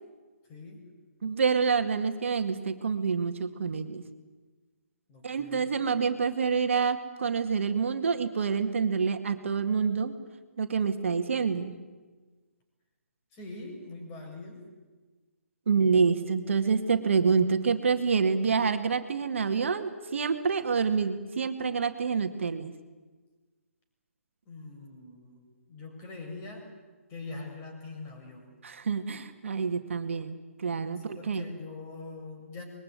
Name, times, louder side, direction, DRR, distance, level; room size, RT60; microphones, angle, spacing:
voice 1, 0.5-0.8 5.1-5.7 13.3-14.6 24.5-26.7 27.1-28.6 31.0-32.6, left 3 dB, 25° left, 3 dB, 7.4 m, -43 dB
voice 2, 1.2-4.0 5.2-10.1 10.6-11.7 15.7-22.7 28.6-31.4, right 5 dB, 55° right, 7 dB, 2.0 m, -27 dB
25.5 x 22.0 x 9.7 m, 1.3 s
figure-of-eight pair, 140°, 8 cm